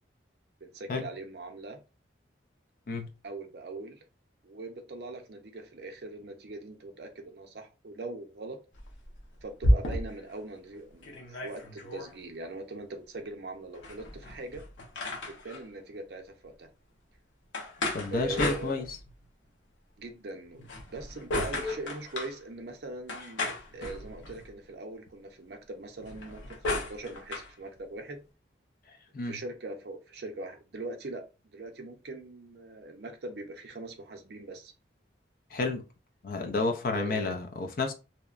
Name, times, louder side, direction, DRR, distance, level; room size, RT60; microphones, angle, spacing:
voice 1, 0.6-1.8 3.2-4.0 4.4-8.6 9.4-14.6 15.3-16.7 18.1-18.8 20.0-20.6 20.9-28.2 29.2-31.2 31.5-34.7 36.9-37.4, right 2 dB, 60° right, 0.5 m, -41 dB
sound 1, 8.7-10.3 10.7-10.8 11.0-12.1 13.7-15.6 17.5-19.2 20.5-22.4 23.1-24.5 26.0-27.5, left 1 dB, 85° left, 0.7 m, -33 dB
voice 2, 17.9-18.9 29.1-29.3 35.5-35.8 36.2-37.9, left 3 dB, 50° left, 0.4 m, -30 dB
2.8 x 2.1 x 2.4 m
head